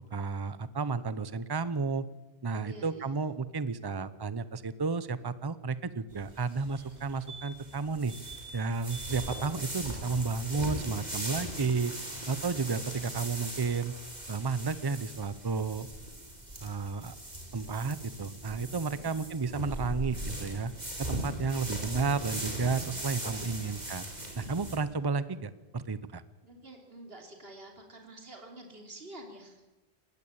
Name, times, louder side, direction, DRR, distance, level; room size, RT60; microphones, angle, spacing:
voice 1, 0.1-2.1 2.4-8.1 8.5-11.9 12.3-13.9 14.3-15.9 16.6-17.2 17.5-20.7 21.0-24.1 24.4-26.2, right 4 dB, 25° right, 16 dB, 0.7 m, -32 dB
voice 2, 2.6-3.2 18.9-19.2 23.5-23.9 26.4-29.6, right 1 dB, 65° right, 3 dB, 3.3 m, -49 dB
sound 1, 6.1-24.8, right 1 dB, 40° right, 3.8 m, -40 dB
sound 2, 7.0-7.1 7.3-7.8 8.1-8.5 8.9-9.3 11.7-11.8 12.0-12.1, right 5 dB, 80° right, 4.3 m, -46 dB
20.0 x 15.5 x 8.8 m, 1.1 s
omnidirectional pair, 1.1 m